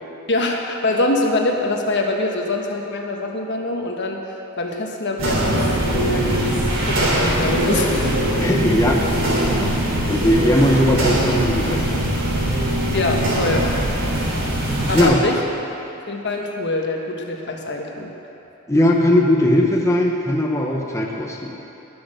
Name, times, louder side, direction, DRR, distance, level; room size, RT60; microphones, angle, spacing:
voice 1, 0.3-4.2 4.6-8.2 12.9-13.7 14.9-15.4 16.1-18.1, left 2 dB, 55° left, 1 dB, 1.4 m, -24 dB
sound 1, 5.2-15.0, right 1 dB, 65° right, 3.2 m, -21 dB
voice 2, 8.4-9.0 10.1-12.0 14.9-15.2 18.7-21.5, left 1 dB, 15° left, -1 dB, 0.9 m, -18 dB
19.5 x 6.6 x 6.4 m, 3.0 s
head